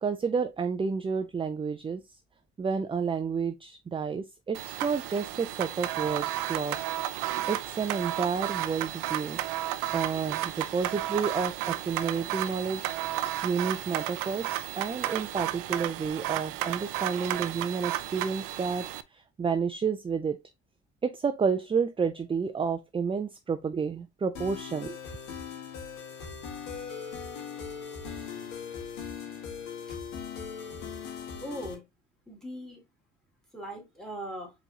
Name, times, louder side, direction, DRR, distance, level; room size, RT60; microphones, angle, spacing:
voice 1, 0.0-2.0 2.6-6.8 7.5-9.4 9.9-13.0 13.4-18.9 19.1-20.4 21.0-25.0, right 5 dB, 15° right, 0.4 m, -30 dB
sound 1, 4.5-19.0, right 14 dB, 85° right, 0.5 m, -33 dB
sound 2, 24.4-31.7, left 6 dB, 75° left, 1.9 m, -39 dB
voice 2, 31.4-31.8 32.3-32.8 33.5-34.5, equal, ahead, 2.6 m, -39 dB
4.6 x 3.9 x 2.9 m
supercardioid pair, 80°, 32 cm